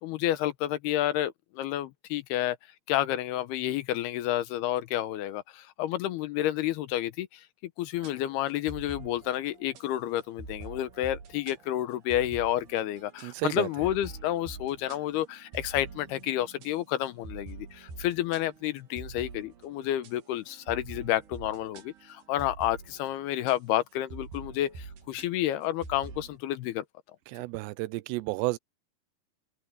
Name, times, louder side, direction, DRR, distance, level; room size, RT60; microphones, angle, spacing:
voice 1, 0.0-2.6 2.9-7.4 7.8-26.8, left 13 dB, 75° left, 2.8 m, -30 dB
sound 1, 8.0-23.5 24.1-26.4, right 4 dB, 70° right, 4.4 m, -46 dB
voice 2, 13.2-13.9 27.3-28.6, right 20 dB, 85° right, 2.8 m, -32 dB
omnidirectional pair, 4.8 m